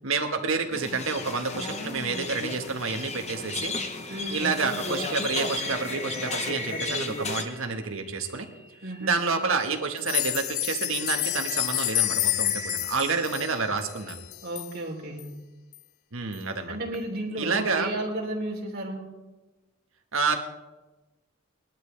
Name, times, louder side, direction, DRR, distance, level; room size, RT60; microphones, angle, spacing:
voice 1, 0.0-3.7 4.3-8.5 9.0-14.2 16.1-16.8 17.4-17.9 20.1-20.4, right 4 dB, 75° right, 5 dB, 1.5 m, -29 dB
sound 1, 0.7-7.4, left 3 dB, 35° left, 1.0 m, -33 dB
sound 2, 2.9-9.7 10.1-14.1, equal, 5° right, 3.7 m, -43 dB
voice 2, 4.1-4.5 8.8-9.2 14.4-15.4 16.7-19.1, right 1 dB, 50° right, -2 dB, 3.3 m, -33 dB
sound 3, 10.0-14.7 15.2-15.3 15.7-15.8 16.3-16.4, left 16 dB, 80° left, 0.5 m, -29 dB
20.5 x 12.0 x 3.3 m, 1.1 s
head